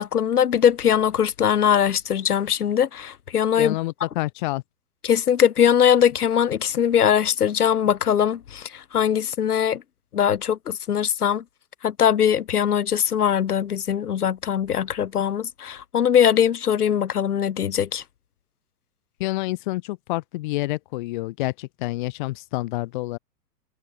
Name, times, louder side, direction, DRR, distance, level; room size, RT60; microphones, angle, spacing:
voice 1, 0.0-3.8 5.0-9.8 10.1-11.4 11.8-18.0, left 8 dB, 65° left, 1.1 m, -21 dB
voice 2, 3.6-4.6 19.2-23.2, left 19 dB, 30° left, 0.8 m, -28 dB
figure-of-eight pair, 110°, 49 cm